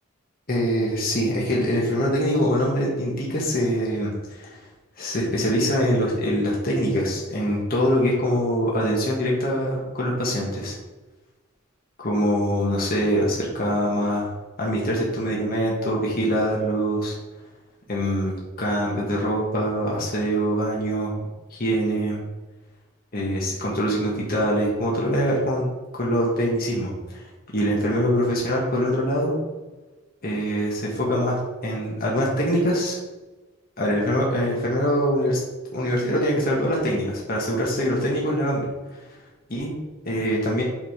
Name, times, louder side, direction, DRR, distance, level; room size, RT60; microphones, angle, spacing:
voice 1, 0.5-4.6 5.0-10.7 12.0-14.3 14.6-17.1 17.9-21.1 21.5-22.2 23.1-25.7 25.9-27.2 27.5-29.4 30.2-33.0 33.8-35.4 35.7-38.6 39.5-39.7 40.0-40.6, equal, 45° left, -3 dB, 1.5 m, -24 dB
7.5 x 3.7 x 5.1 m, 1.2 s
head